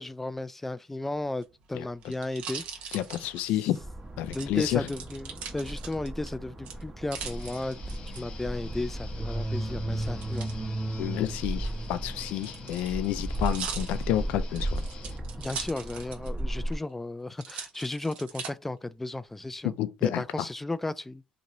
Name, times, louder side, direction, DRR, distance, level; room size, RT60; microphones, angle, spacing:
voice 1, 0.0-2.6 3.4-3.5 4.3-10.5 15.4-19.7 20.0-21.2, left 2 dB, 10° left, 0.3 m, -34 dB
sound 1, 1.3-3.8 4.3-6.3 6.6-8.2 10.0-10.5 11.5-16.4 16.7-16.8 17.4-18.5 19.1-19.7, right 7 dB, 70° right, 0.9 m, -41 dB
voice 2, 2.9-3.8 4.2-4.8 11.0-14.8 19.6-20.2, left 13 dB, 80° left, 0.4 m, -29 dB
sound 2, 3.8-16.8, right 1 dB, 25° right, 0.8 m, -35 dB
Guitar, 7.1-15.2, left 6 dB, 60° left, 0.7 m, -49 dB
2.9 x 2.9 x 2.6 m
cardioid pair, 90°, 2 cm